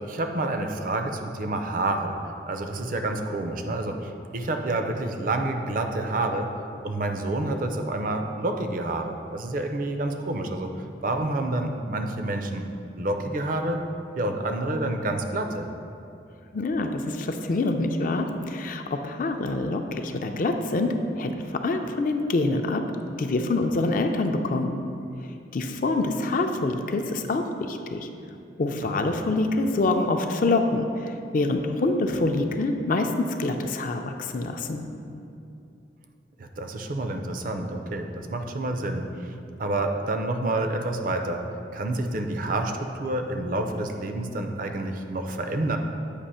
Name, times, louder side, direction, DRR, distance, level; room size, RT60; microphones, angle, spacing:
voice 1, 0.0-2.2 2.5-6.5 6.8-10.7 11.0-12.6 13.0-13.8 14.1-15.7 28.8-29.1 36.4-39.0 39.6-41.4 41.7-45.8, right 2 dB, 50° right, 5 dB, 0.5 m, -28 dB
voice 2, 16.5-21.4 21.6-22.8 23.2-24.8 25.5-28.1 28.6-30.9 31.3-33.1 33.4-34.9, left 2 dB, 50° left, 5 dB, 0.4 m, -26 dB
8.2 x 2.9 x 5.5 m, 2.6 s
head